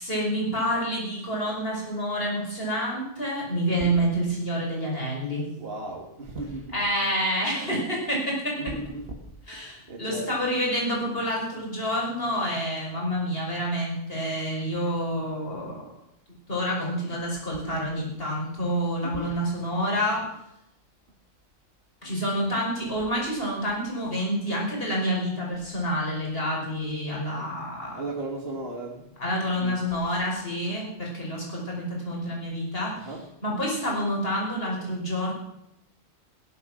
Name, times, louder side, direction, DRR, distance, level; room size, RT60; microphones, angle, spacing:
voice 1, 0.0-5.5 6.7-8.7 9.5-15.8 16.5-20.3 22.0-28.0 29.2-33.2 33.4-35.3, equal, 45° left, -2 dB, 5.8 m, -28 dB
voice 2, 5.6-6.8 8.6-9.2 9.9-10.4 19.0-19.4 28.0-29.1 29.5-29.8 33.0-33.3, right 2 dB, 50° right, 1 dB, 2.1 m, -35 dB
16.5 x 11.0 x 6.2 m, 0.81 s
omnidirectional pair, 1.4 m